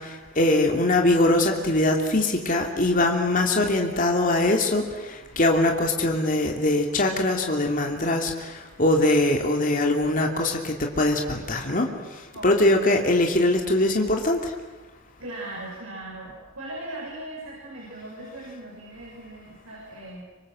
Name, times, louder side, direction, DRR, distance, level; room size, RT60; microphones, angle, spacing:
voice 1, 0.4-4.8 5.4-8.3 8.8-11.9 12.4-14.4, left 2 dB, 40° left, 1 dB, 2.9 m, -22 dB
voice 2, 12.3-12.7 15.2-20.2, right 1 dB, 90° right, -5 dB, 7.2 m, -39 dB
26.0 x 25.0 x 7.8 m, 1.2 s
head